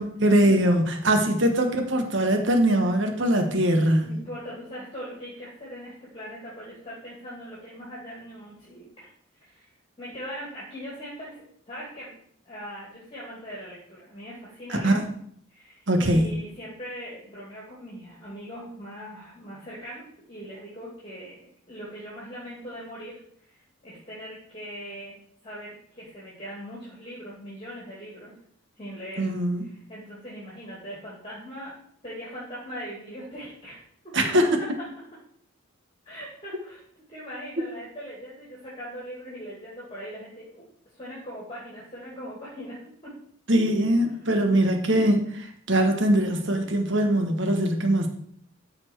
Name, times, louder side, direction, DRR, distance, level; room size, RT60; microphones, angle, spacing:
voice 1, 0.0-4.1 14.8-15.0 15.9-16.3 29.2-29.6 34.1-34.6 43.5-48.1, right 1 dB, 60° right, 5 dB, 1.3 m, -22 dB
voice 2, 4.0-9.1 9.3-9.7 10.0-12.2 12.4-15.0 15.5-25.2 25.4-28.3 28.7-29.3 29.6-31.7 32.0-33.8 34.0-34.7 36.0-36.8 37.1-40.6 40.9-43.1, equal, 25° left, -6 dB, 2.6 m, -40 dB
12.5 x 4.3 x 4.6 m, 0.63 s
head